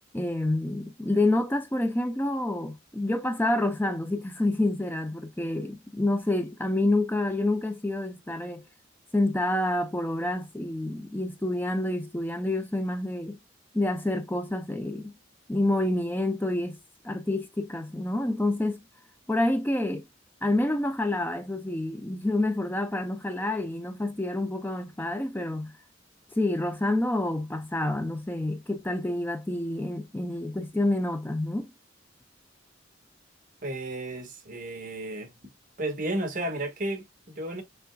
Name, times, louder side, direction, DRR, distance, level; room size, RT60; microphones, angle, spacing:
voice 1, 0.1-8.6 9.1-13.4 13.7-15.1 15.5-16.8 17.0-18.8 19.3-20.0 20.4-25.7 26.3-31.7, left 1 dB, 10° left, 0.5 m, -28 dB
voice 2, 33.6-35.5 35.8-37.6, right 1 dB, 45° right, 1.6 m, -33 dB
6.6 x 3.5 x 2.2 m
head